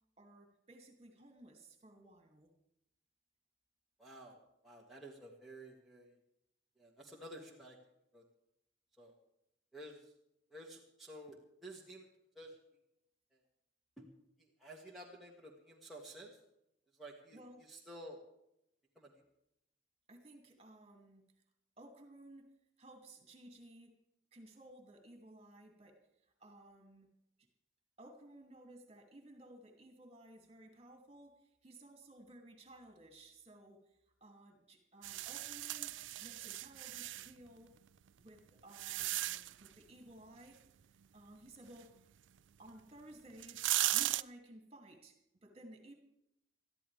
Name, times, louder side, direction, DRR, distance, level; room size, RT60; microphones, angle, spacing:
voice 1, 0.2-2.5 17.3-17.7 20.1-21.2 21.8-24.0 24.3-26.0 26.4-27.1 28.0-37.8 38.2-40.7 41.1-42.0 42.6-45.9, right 1 dB, 35° right, 3 dB, 2.7 m, -57 dB
voice 2, 4.0-6.1 6.8-7.8 8.1-8.2 9.0-9.2 9.7-10.1 10.5-12.1 12.4-12.5 14.0-14.1 14.4-16.3 17.0-17.4 17.7-18.2 19.0-19.1, right 1 dB, ahead, -5 dB, 2.1 m, -52 dB
sound 1, 35.0-37.3 38.1-39.7 42.7-42.8 43.3-44.2, right 16 dB, 85° right, 0.4 m, -37 dB
21.0 x 14.0 x 3.5 m, 0.81 s
head